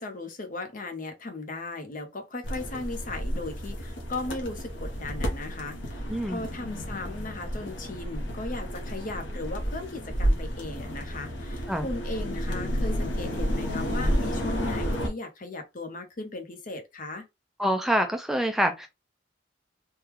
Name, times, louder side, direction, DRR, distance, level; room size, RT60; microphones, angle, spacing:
voice 1, 0.0-17.2, left 2 dB, 45° left, 0.8 m, -37 dB
sound 1, 2.4-15.1, equal, 80° left, 1.0 m, -31 dB
voice 2, 6.1-6.4 11.7-11.9 17.6-18.9, equal, ahead, 0.3 m, -26 dB
3.6 x 2.2 x 3.0 m
head